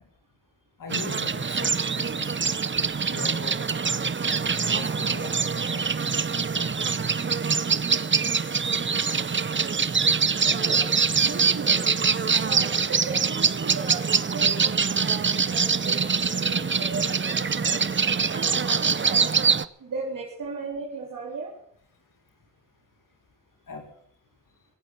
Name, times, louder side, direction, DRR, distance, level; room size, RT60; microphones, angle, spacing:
voice 1, 0.8-3.6 4.6-5.4 5.7-5.9 6.5-6.9 10.8-10.9 23.7-23.9, left 5 dB, 85° left, 4 dB, 2.2 m, -41 dB
sound 1, 0.9-19.6, right 5 dB, 35° right, 0.7 m, -24 dB
voice 2, 10.4-10.9 11.3-11.9 12.4-17.8 18.3-19.2 19.8-21.5, right 4 dB, 85° right, -5 dB, 3.9 m, -36 dB
18.0 x 9.1 x 8.1 m, 0.66 s
cardioid pair, 50°, 32 cm